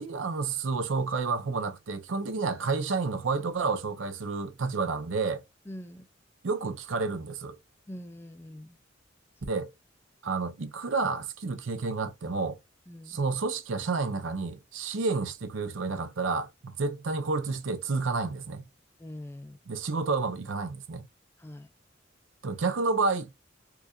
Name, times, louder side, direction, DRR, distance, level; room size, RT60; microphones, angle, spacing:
voice 1, 0.0-5.4 6.4-7.6 9.5-9.7 10.2-12.6 13.1-18.7 19.7-21.0 22.4-23.3, right 4 dB, 80° right, 0.6 m, -30 dB
voice 2, 5.7-6.1 7.9-8.8 12.9-13.2 19.0-19.6 21.4-21.7, left 1 dB, 10° left, 0.3 m, -43 dB
4.6 x 2.4 x 2.3 m
head